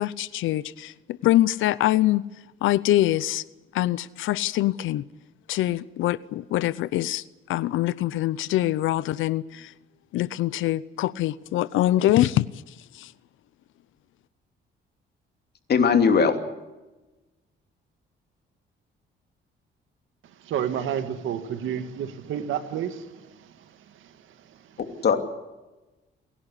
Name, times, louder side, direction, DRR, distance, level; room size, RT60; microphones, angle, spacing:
voice 1, 0.0-2.2 2.6-3.4 3.7-5.0 5.5-7.2 7.5-9.7 10.1-12.4 12.9-13.1, left 14 dB, 85° left, 0.7 m, -24 dB
voice 2, 15.7-16.3 24.8-25.2, left 6 dB, 55° left, 2.8 m, -19 dB
voice 3, 20.4-23.5 24.0-24.1, right 9 dB, 80° right, 1.9 m, -30 dB
29.5 x 11.0 x 10.0 m
cardioid pair, 90°, 20 cm